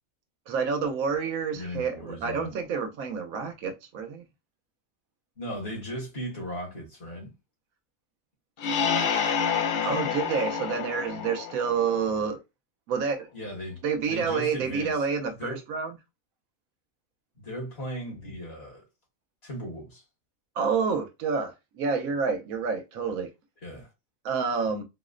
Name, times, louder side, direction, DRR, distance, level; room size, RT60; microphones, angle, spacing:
voice 1, 0.5-4.2 9.8-12.4 12.9-13.3 13.8-16.0 20.6-23.3 24.2-24.8, right 5 dB, 85° right, 1.1 m, -28 dB
voice 2, 1.5-2.5 5.4-7.3 13.3-13.8 14.0-15.0 15.4-15.6 17.4-18.8 19.4-20.0 23.6-23.9, equal, 50° left, 1.5 m, -37 dB
sound 1, 8.6-12.2, left 7 dB, 65° left, 0.5 m, -28 dB
4.1 x 2.0 x 2.5 m
omnidirectional pair, 1.4 m